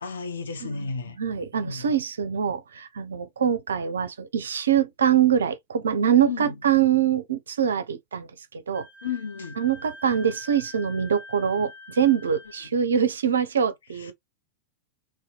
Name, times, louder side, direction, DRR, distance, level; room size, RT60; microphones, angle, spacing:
voice 1, 0.0-1.2 1.5-1.9 6.2-6.6 9.0-9.6 14.0-14.1, left 5 dB, 70° left, 0.5 m, -33 dB
voice 2, 0.6-8.9 9.5-14.1, right 8 dB, 70° right, 0.4 m, -24 dB
Wind instrument woodwind instrument, 8.7-12.7, left 2 dB, 90° left, 1.0 m, -45 dB
2.6 x 2.1 x 2.3 m
figure-of-eight pair, 90°, 0 cm